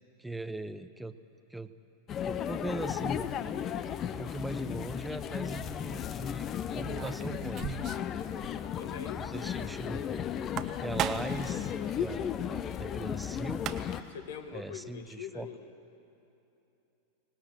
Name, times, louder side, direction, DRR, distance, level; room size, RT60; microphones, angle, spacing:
voice 1, 0.2-1.2 1.5-1.7 2.2-3.3 4.0-7.8 9.2-10.3 10.8-11.7 12.0-13.7 14.5-15.5, right 1 dB, 5° right, 11 dB, 1.0 m, -40 dB
sound 1, 2.1-14.0, left 9 dB, 30° left, 0.8 m, -35 dB
Opening and closing a case, 5.2-5.3 6.7-8.2 8.4-8.5 8.8-8.9 10.3-11.5 13.2-13.3 13.5-14.1, right 10 dB, 35° right, 1.1 m, -36 dB
voice 2, 8.7-9.7 14.1-15.7, left 7 dB, 55° left, 8 dB, 1.5 m, -43 dB
24.0 x 19.0 x 9.2 m, 2.9 s
figure-of-eight pair, 90°, 0 cm